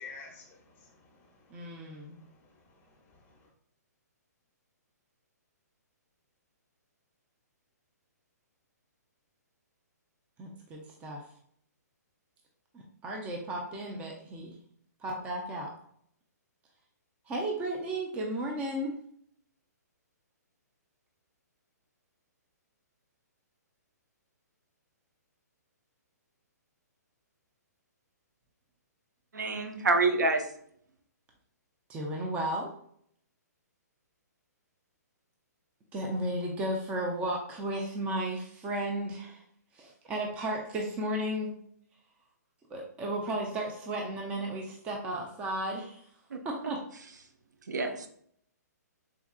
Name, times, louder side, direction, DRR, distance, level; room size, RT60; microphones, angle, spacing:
voice 1, 0.0-3.5, left 4 dB, 20° left, 1 dB, 0.7 m, -52 dB
voice 2, 1.5-2.2 10.4-11.2 12.7-14.5 15.0-15.7 17.3-19.0 31.9-32.7 35.9-39.4 39.7-41.5 42.7-46.1 46.4-46.8, right 1 dB, 15° right, 0 dB, 0.3 m, -34 dB
voice 3, 29.3-30.5 46.3-46.7 47.7-48.1, right 3 dB, 90° right, 6 dB, 0.5 m, -28 dB
3.6 x 2.2 x 2.3 m, 0.65 s
hypercardioid pair, 145°, 9 cm